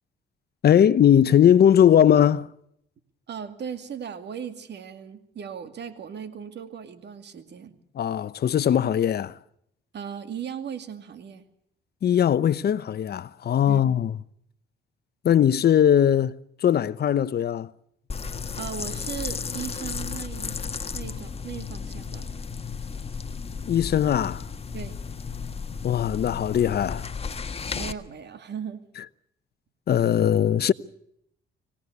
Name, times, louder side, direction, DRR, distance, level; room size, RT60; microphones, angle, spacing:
voice 1, 0.6-2.5 7.9-9.3 12.0-14.1 15.2-17.7 23.6-24.4 25.8-27.1 29.9-30.7, left 9 dB, 55° left, 0.9 m, -20 dB
voice 2, 3.3-7.8 9.9-11.5 13.7-13.8 18.6-20.6 20.9-22.3 24.7-25.0 27.7-28.9, right 7 dB, 60° right, 2.5 m, -37 dB
sound 1, 18.1-27.9, left 5 dB, 30° left, 1.5 m, -34 dB
25.5 x 18.0 x 8.3 m
cardioid pair, 90°, 20 cm